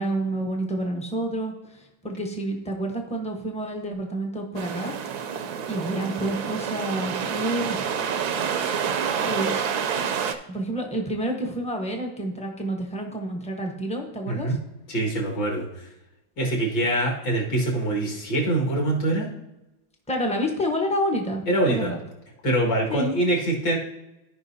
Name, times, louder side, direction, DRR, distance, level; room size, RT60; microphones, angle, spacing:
voice 1, 0.0-4.9 5.7-8.0 9.2-9.6 9.9-10.1 10.5-14.6 20.1-22.0 22.9-23.1, right 1 dB, 5° left, 2 dB, 0.6 m, -29 dB
sound 1, 4.6-10.4, right 7 dB, 65° right, 1.0 m, -28 dB
voice 2, 14.3-14.6 14.9-15.9 16.4-19.3 21.5-21.9 22.4-23.8, right 1 dB, 60° left, -1 dB, 2.5 m, -24 dB
14.5 x 5.2 x 2.7 m, 0.97 s
omnidirectional pair, 2.1 m